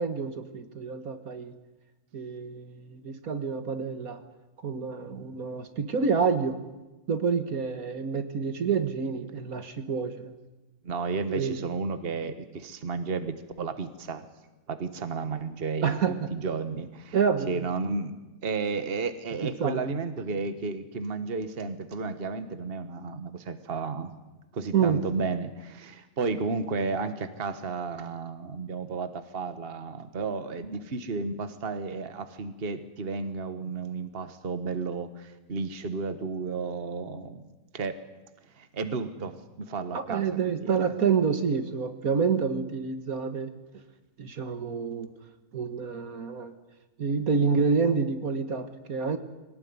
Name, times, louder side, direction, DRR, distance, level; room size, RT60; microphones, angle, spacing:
voice 1, 0.0-1.5 2.1-4.2 4.6-6.6 7.1-10.3 11.3-11.6 15.8-16.3 17.1-17.5 19.4-19.8 24.7-25.0 39.9-43.5 44.2-45.1 45.5-46.5 47.0-49.2, right 5 dB, 70° right, 9 dB, 1.9 m, -28 dB
voice 2, 10.8-14.2 14.7-17.2 17.5-18.2 18.4-24.1 24.5-37.4 37.7-37.9 38.6-40.9, right 4 dB, 40° right, 10 dB, 1.5 m, -33 dB
22.5 x 18.0 x 9.6 m, 1.1 s
omnidirectional pair, 1.6 m